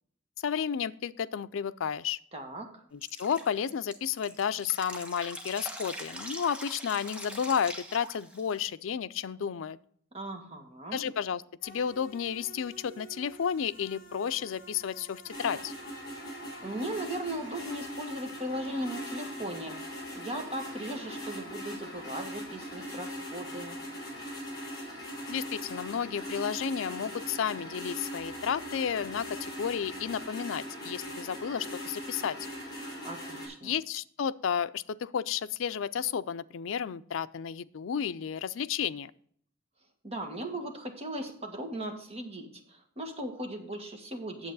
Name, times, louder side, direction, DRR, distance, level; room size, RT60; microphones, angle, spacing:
voice 1, 0.4-2.2 2.9-9.8 10.9-15.7 25.3-32.4 33.6-39.1, left 7 dB, 75° left, 14 dB, 0.4 m, -32 dB
voice 2, 2.3-2.8 10.1-11.0 16.6-23.8 33.0-33.7 40.0-44.5, right 1 dB, 30° right, 3 dB, 1.7 m, -38 dB
Drip, 3.0-8.6, equal, 5° right, 1.2 m, -42 dB
sound 1, 11.6-30.2, equal, 50° left, 3.0 m, -53 dB
sound 2, 15.3-33.5, equal, 20° left, 3.6 m, -41 dB
8.9 x 7.8 x 4.0 m, 0.62 s
head